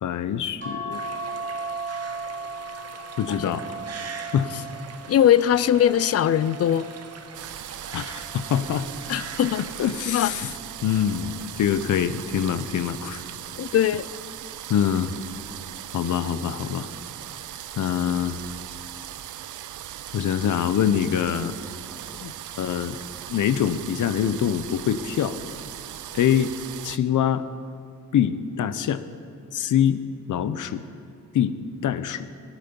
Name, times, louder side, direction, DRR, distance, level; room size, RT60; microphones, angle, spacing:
voice 1, 0.0-1.0 3.2-3.8 4.3-4.5 7.9-8.9 9.8-10.5 10.8-13.3 14.7-15.1 15.9-16.9 17.8-18.5 20.1-21.5 22.5-23.0 23.3-25.4 26.1-26.5 26.8-27.4 28.1-29.0 29.5-30.0 30.3-30.8 31.3-31.5 31.8-32.3, left 9 dB, 80° left, 13 dB, 0.7 m, -24 dB
sound 1, 0.6-7.2 7.9-9.3 10.5-10.9 11.3-11.4, right 3 dB, 40° right, 2.5 m, -37 dB
sound 2, 0.9-9.8, right 5 dB, 55° right, 1.0 m, -42 dB
voice 2, 5.1-6.9 9.1-9.6 10.1-10.3 13.6-14.0 22.2-22.3, left 10 dB, 55° left, 17 dB, 0.4 m, -20 dB
sound 3, 7.3-27.0, right 11 dB, 75° right, 0.5 m, -39 dB
21.5 x 9.2 x 5.3 m, 2.3 s
wide cardioid pair, 145°, 31 cm